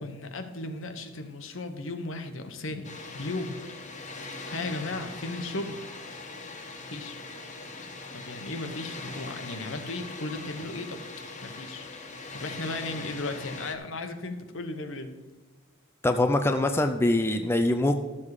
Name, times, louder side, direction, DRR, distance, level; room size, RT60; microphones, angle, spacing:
voice 1, 0.0-2.9 3.1-3.6 4.5-5.8 6.9-7.2 8.1-11.0 11.4-11.9 12.3-15.1, left 2 dB, 65° left, 7 dB, 1.1 m, -35 dB
Water, 2.8-13.8, left 3 dB, 35° left, 1.3 m, -41 dB
voice 2, 16.0-18.0, left 1 dB, 10° left, 6 dB, 0.5 m, -23 dB
13.5 x 7.3 x 4.9 m, 1.3 s
head